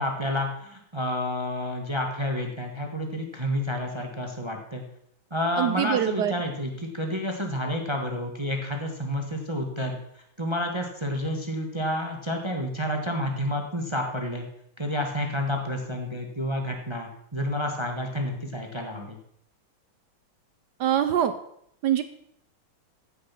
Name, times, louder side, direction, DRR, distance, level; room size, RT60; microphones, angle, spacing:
voice 1, 0.0-4.8 5.3-14.4 14.8-19.2, left 1 dB, 15° right, 3 dB, 1.2 m, -30 dB
voice 2, 5.6-6.3 20.8-21.3 21.8-22.0, right 10 dB, 70° right, 11 dB, 1.0 m, -23 dB
15.0 x 6.8 x 5.8 m, 0.72 s
omnidirectional pair, 2.2 m